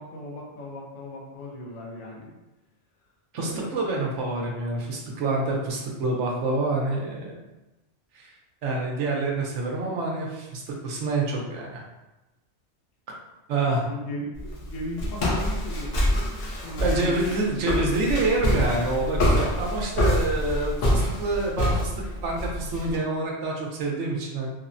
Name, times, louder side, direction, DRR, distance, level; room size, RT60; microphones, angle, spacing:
voice 1, 0.0-2.3 3.4-3.9 13.7-17.2, equal, 80° left, -3 dB, 1.1 m, -37 dB
voice 2, 3.3-7.4 8.1-8.3 8.6-11.8 13.1-13.2 13.5-13.8 16.8-21.9 22.2-24.5, right 2 dB, 75° right, -1 dB, 0.9 m, -27 dB
Walk footsteps, 14.3-23.0, equal, 60° left, 0.7 m, -26 dB
3.3 x 2.0 x 2.5 m, 1.0 s
omnidirectional pair, 1.3 m